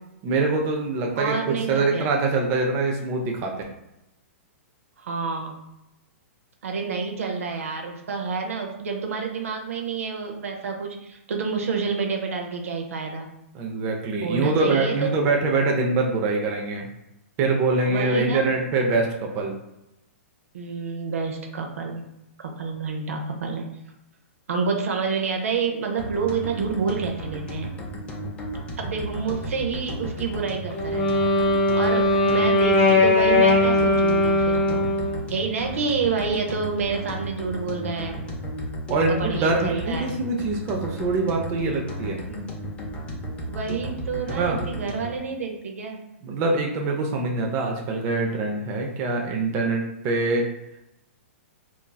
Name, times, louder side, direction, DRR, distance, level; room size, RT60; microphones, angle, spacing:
voice 1, 0.2-1.4 1.7-3.5 13.5-16.9 17.4-19.5 38.9-42.2 44.3-44.6 46.2-50.4, right 3 dB, 35° right, 1 dB, 0.5 m, -24 dB
voice 2, 1.2-2.1 5.0-5.6 6.6-13.3 14.2-14.9 17.9-18.5 20.5-22.1 22.4-23.7 24.5-27.8 28.8-31.3 31.7-34.9 35.3-38.2 39.1-40.2 42.3-42.4 43.5-46.0, right 5 dB, 80° right, 2 dB, 0.6 m, -28 dB
sound 1, 26.0-45.2, equal, 20° left, 0.5 m, -34 dB
Wind instrument woodwind instrument, 30.7-35.3, left 2 dB, 45° left, 0.8 m, -20 dB
2.9 x 2.6 x 2.2 m, 0.88 s
hypercardioid pair, 135°, 7 cm